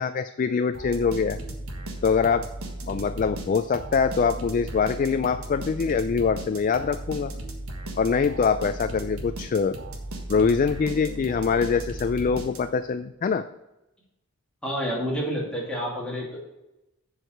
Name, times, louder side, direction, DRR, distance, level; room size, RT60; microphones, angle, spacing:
voice 1, 0.0-1.4 2.0-2.5 2.9-7.3 8.0-9.8 10.3-13.5, left 5 dB, 40° left, 10 dB, 0.3 m, -24 dB
sound 1, 0.7-12.9, right 1 dB, 85° right, 1.5 m, -36 dB
voice 2, 14.6-16.4, equal, 5° left, -5 dB, 2.6 m, -29 dB
7.7 x 4.8 x 6.4 m, 0.93 s
head